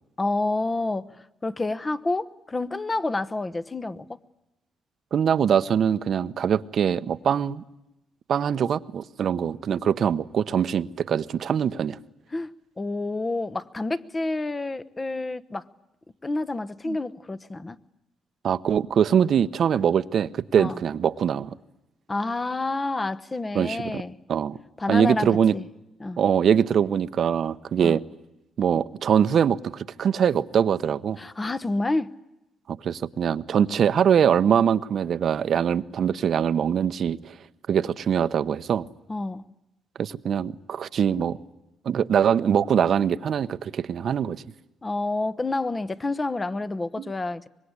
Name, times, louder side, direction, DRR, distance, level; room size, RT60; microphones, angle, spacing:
voice 1, 0.2-1.1 1.4-4.2 12.3-12.5 12.8-15.6 16.2-17.8 20.6-20.8 22.1-24.2 24.8-25.6 26.0-26.2 27.8-28.0 31.2-32.1 39.1-39.4 44.8-47.5, left 2 dB, 20° left, 14 dB, 1.0 m, -28 dB
voice 2, 5.1-7.6 8.3-12.0 16.9-17.0 18.4-21.5 23.5-24.0 24.3-24.6 24.9-25.5 26.2-28.0 28.6-31.2 32.7-37.3 37.7-38.8 40.0-41.4 41.8-44.4 47.0-47.1, right 8 dB, 60° right, 15 dB, 0.9 m, -23 dB
25.0 x 21.5 x 9.7 m, 0.93 s
cardioid pair, 90°, 0 cm